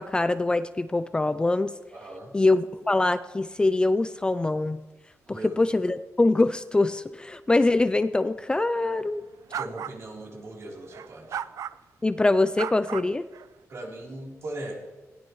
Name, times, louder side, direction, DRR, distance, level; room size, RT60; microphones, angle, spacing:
voice 1, 0.0-1.7 2.3-4.8 5.3-9.2 12.0-13.3, left 2 dB, 15° left, 12 dB, 0.4 m, -24 dB
voice 2, 1.9-2.3 5.3-5.6 9.5-11.4 13.7-14.8, right 1 dB, 60° right, -2 dB, 3.5 m, -39 dB
sound 1, 9.5-10.0 10.9-11.7 12.6-13.5, right 9 dB, 85° right, 0.4 m, -34 dB
20.0 x 16.5 x 3.1 m, 1.2 s
wide cardioid pair, 160°, 6 cm